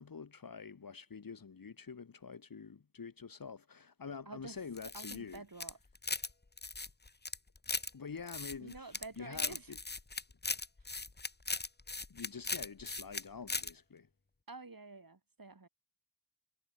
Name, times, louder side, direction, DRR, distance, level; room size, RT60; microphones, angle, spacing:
voice 1, 0.0-5.4 7.9-9.8 12.1-14.1, left 5 dB, 80° left, 1.1 m, -47 dB
voice 2, 4.3-4.6 4.9-5.8 8.6-9.7 14.5-15.7, right 3 dB, 80° right, 7.3 m, -49 dB
sound 1, 4.8-6.3 6.6-7.9 8.3-9.1 9.3-13.2 13.5-13.7, left 3 dB, 30° left, 1.0 m, -38 dB
wide cardioid pair, 55°, 34 cm